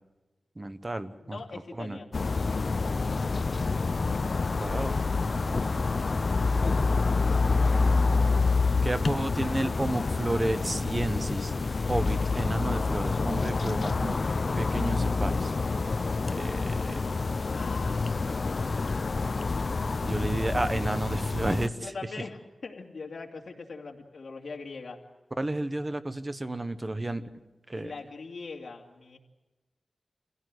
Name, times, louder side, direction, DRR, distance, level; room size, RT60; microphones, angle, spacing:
voice 1, 0.6-1.4 1.8-2.0 4.6-4.9 8.8-11.5 11.9-14.2 14.6-15.5 16.3-17.0 20.0-21.7 25.4-27.2 27.7-27.9, right 2 dB, 25° right, 11 dB, 1.1 m, -31 dB
voice 2, 1.2-2.3 17.5-18.8 21.8-25.0 27.7-29.2, left 4 dB, 65° left, 1 dB, 2.6 m, -41 dB
sound 1, 2.1-21.7, left 4 dB, 50° left, 0.7 m, -27 dB
26.5 x 16.5 x 7.9 m, 1.1 s
wide cardioid pair, 105°, 0 cm